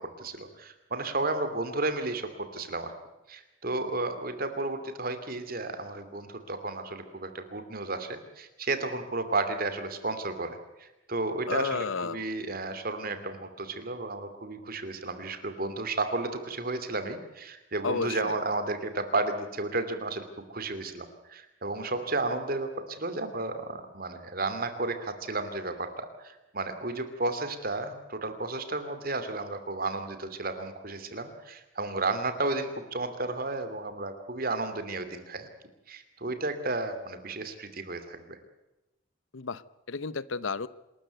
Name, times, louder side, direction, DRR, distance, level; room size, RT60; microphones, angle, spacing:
voice 1, 0.0-2.9 3.3-35.5 35.9-38.4, right 2 dB, 50° right, 9 dB, 2.8 m, -33 dB
voice 2, 11.5-12.2 17.8-18.4 39.3-40.7, left 4 dB, 85° left, 18 dB, 0.9 m, -32 dB
27.0 x 13.5 x 9.2 m, 1.0 s
head